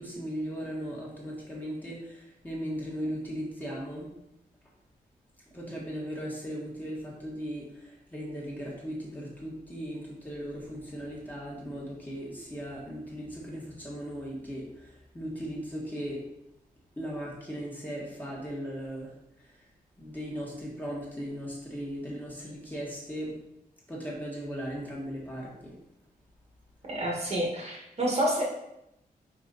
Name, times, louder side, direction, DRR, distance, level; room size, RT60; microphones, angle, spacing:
voice 1, 0.0-2.2 2.4-4.1 5.5-7.6 8.1-14.6 15.1-16.2 17.0-19.1 20.0-23.3 23.9-25.7, equal, 10° left, -5 dB, 1.7 m, -37 dB
voice 2, 26.9-28.4, right 1 dB, 40° right, -2 dB, 1.5 m, -28 dB
5.3 x 4.4 x 4.0 m, 0.84 s
wide cardioid pair, 135°, 16 cm